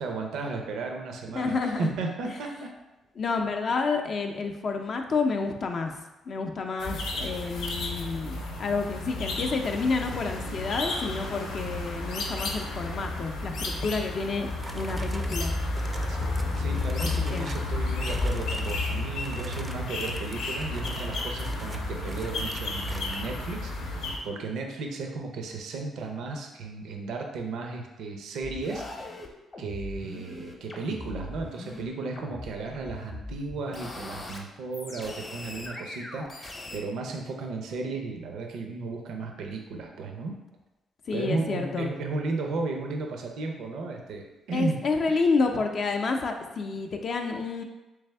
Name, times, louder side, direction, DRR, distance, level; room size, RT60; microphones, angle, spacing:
voice 1, 0.0-2.7 16.1-16.3 16.6-29.1 29.6-40.3 41.1-44.8, right 3 dB, 75° right, 2 dB, 0.5 m, -34 dB
voice 2, 1.3-1.9 3.2-6.0 6.3-14.5 14.7-15.5 17.0-17.5 41.1-41.9 44.5-47.6, left 4 dB, 50° left, 4 dB, 0.4 m, -29 dB
sound 1, 6.8-24.2, left 2 dB, 90° left, 0.6 m, -32 dB
sound 2, 14.2-17.7 18.0-18.8 19.2-23.2, right 2 dB, 20° right, 0.3 m, -45 dB
sound 3, 28.4-31.8 32.1-34.4 34.7-36.8, left 2 dB, 30° left, 0.7 m, -41 dB
3.4 x 3.4 x 3.3 m, 1.0 s
cardioid pair, 90°, 0 cm